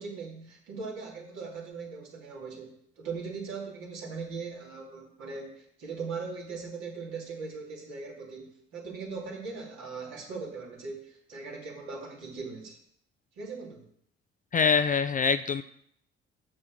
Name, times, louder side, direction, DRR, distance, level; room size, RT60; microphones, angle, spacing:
voice 1, 0.0-12.8 13.4-13.9, right 4 dB, 65° right, -2 dB, 2.9 m, -39 dB
voice 2, 14.5-15.6, left 6 dB, 25° left, 12 dB, 0.5 m, -24 dB
7.5 x 6.4 x 6.0 m, 0.67 s
figure-of-eight pair, 45°, 31 cm